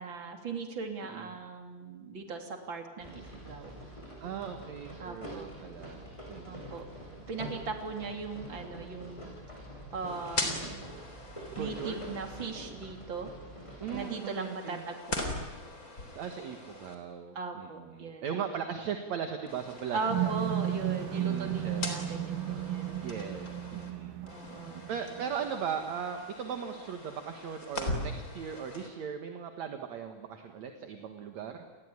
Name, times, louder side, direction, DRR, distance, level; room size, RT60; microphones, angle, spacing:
voice 1, 0.0-3.8 5.0-5.5 6.4-6.8 7.3-9.3 9.9-10.8 11.6-13.3 13.9-15.5 17.3-18.4 19.9-23.1 24.2-25.2, right 4 dB, 35° right, 4 dB, 3.7 m, -39 dB
voice 2, 1.0-1.3 4.2-6.8 11.6-12.0 13.8-14.8 16.1-20.4 21.1-21.9 23.0-24.2 24.9-31.6, right 7 dB, 60° right, 6 dB, 2.7 m, -38 dB
sound 1, 3.0-14.1, equal, 10° left, 7.5 m, -45 dB
sound 2, 10.0-12.5 13.9-16.9 19.5-23.9 24.3-28.9, left 2 dB, 25° left, 4.0 m, -41 dB
sound 3, 20.1-25.4, right 12 dB, 85° right, 3.2 m, -34 dB
29.5 x 20.5 x 9.7 m, 1.2 s
omnidirectional pair, 3.8 m